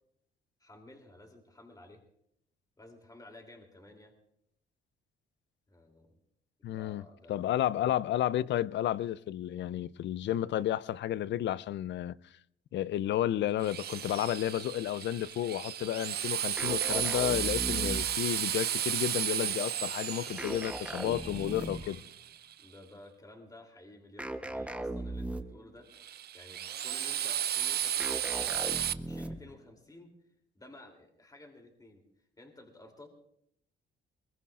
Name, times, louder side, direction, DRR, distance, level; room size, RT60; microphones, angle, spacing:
voice 1, 0.6-2.0 2.8-4.1 5.7-6.2 6.7-7.4 7.7-8.0 22.6-25.9 26.3-28.6 29.0-30.1 30.5-32.0 32.4-33.1, left 1 dB, 20° left, 3.0 m, -53 dB
voice 2, 6.6-7.0 7.3-12.2 12.7-22.0, left 12 dB, 65° left, 0.5 m, -32 dB
Drill, 13.6-22.5 25.9-28.9, right 11 dB, 55° right, 0.5 m, -34 dB
sound 1, 16.6-18.3 20.4-22.0 24.2-25.7 28.0-29.6, right 1 dB, 5° right, 0.9 m, -38 dB
sound 2, 17.6-22.1, right 4 dB, 40° right, 1.3 m, -53 dB
22.0 x 22.0 x 2.4 m
cardioid pair, 90°, 20 cm